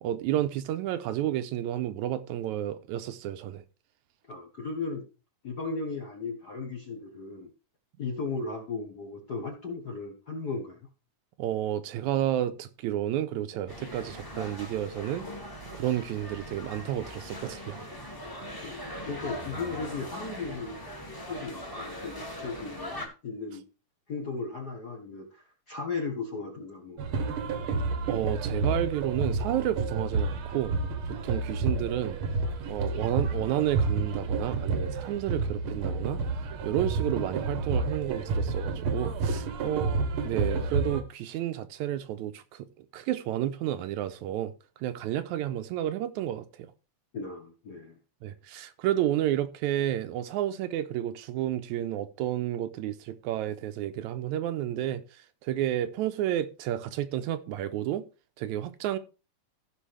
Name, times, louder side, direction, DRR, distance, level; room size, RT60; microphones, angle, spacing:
voice 1, 0.0-3.6 11.4-15.3 15.7-17.9 28.0-30.7 31.1-32.2 32.7-36.2 36.6-42.7 42.9-44.5 44.8-46.5 48.2-55.0 55.4-58.0 58.4-59.0, right 12 dB, 80° right, 2.0 m, -31 dB
voice 2, 4.3-5.1 5.4-7.5 8.0-10.9 18.6-20.8 21.3-23.6 24.1-27.0 39.6-40.0 47.1-48.0, left 4 dB, 55° left, 1.1 m, -36 dB
sound 1, 13.7-23.1, equal, 10° left, 1.1 m, -40 dB
sound 2, 27.0-41.0, right 4 dB, 60° right, 1.4 m, -30 dB
15.5 x 5.5 x 3.3 m
omnidirectional pair, 3.5 m